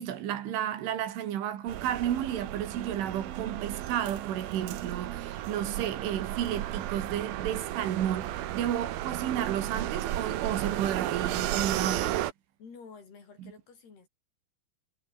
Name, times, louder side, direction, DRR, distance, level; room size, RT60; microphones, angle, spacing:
voice 1, 0.0-12.2 13.4-13.5, right 10 dB, 85° right, 4.9 m, -32 dB
sound 1, 1.7-12.3, right 13 dB, 65° right, 2.6 m, -34 dB
voice 2, 12.6-14.1, left 5 dB, 55° left, 7.7 m, -50 dB
omnidirectional pair, 5.4 m